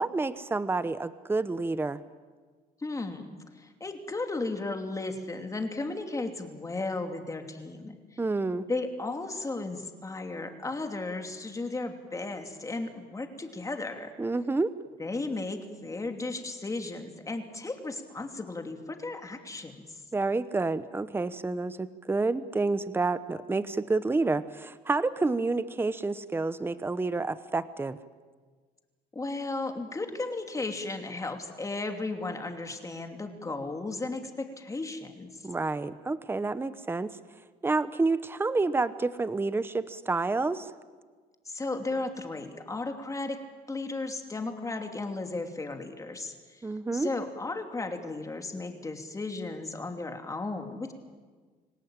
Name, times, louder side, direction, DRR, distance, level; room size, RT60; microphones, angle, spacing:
voice 1, 0.0-2.0 8.2-8.7 14.2-14.7 20.1-28.0 35.4-37.2 37.6-40.7 46.6-47.1, right 3 dB, 15° right, 14 dB, 0.9 m, -29 dB
voice 2, 2.8-8.2 8.7-14.1 15.0-20.0 29.1-35.5 41.4-50.9, left 3 dB, 20° left, 5 dB, 2.8 m, -35 dB
26.5 x 18.0 x 8.8 m, 1.5 s
cardioid pair, 110°, 17 cm